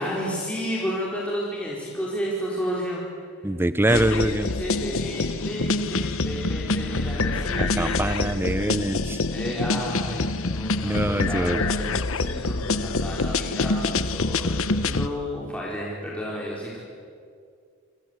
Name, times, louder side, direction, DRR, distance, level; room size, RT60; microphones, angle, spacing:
voice 1, 0.0-3.0 3.9-8.2 9.3-16.8, equal, 5° left, -5 dB, 4.7 m, -32 dB
voice 2, 3.4-4.5 7.6-9.2 10.8-11.6, right 1 dB, 10° right, 14 dB, 0.6 m, -24 dB
sound 1, 3.9-15.1, left 3 dB, 70° left, 1.1 m, -26 dB
29.0 x 25.0 x 8.2 m, 2.2 s
head